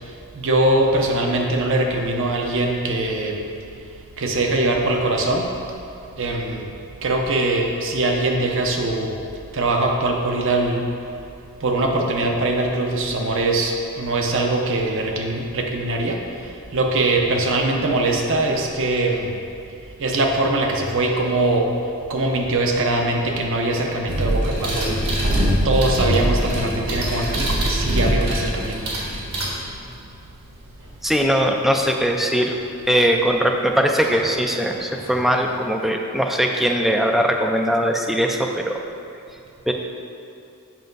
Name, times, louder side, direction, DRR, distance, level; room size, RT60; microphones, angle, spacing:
voice 1, 0.3-3.4 4.2-5.5 6.2-6.7 7.0-9.1 9.5-10.8 11.6-16.2 16.7-19.3 20.0-21.7 22.1-24.9 25.6-28.8, right 2 dB, 60° right, 1 dB, 0.7 m, -22 dB
sound 1, 24.1-30.0 32.5-32.6 34.0-34.2 34.6-35.6, equal, 80° right, 1.5 m, -23 dB
voice 2, 31.0-32.6 32.9-38.8 39.7-39.8, equal, ahead, 2 dB, 0.4 m, -20 dB
7.5 x 5.5 x 3.9 m, 2.6 s
head